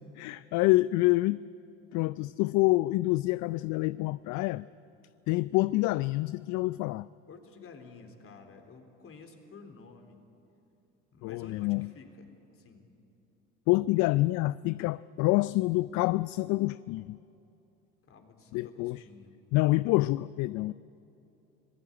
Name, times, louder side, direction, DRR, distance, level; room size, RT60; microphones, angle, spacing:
voice 1, 0.2-1.5 1.9-4.7 5.3-7.1 11.2-11.9 13.7-17.2 18.5-19.0 19.5-20.7, left 20 dB, 55° left, 18 dB, 0.5 m, -27 dB
voice 2, 7.3-10.2 11.1-12.9 18.1-19.4, left 4 dB, 40° left, 4 dB, 3.8 m, -51 dB
25.0 x 17.5 x 9.9 m, 2.8 s
hypercardioid pair, 75°, 35 cm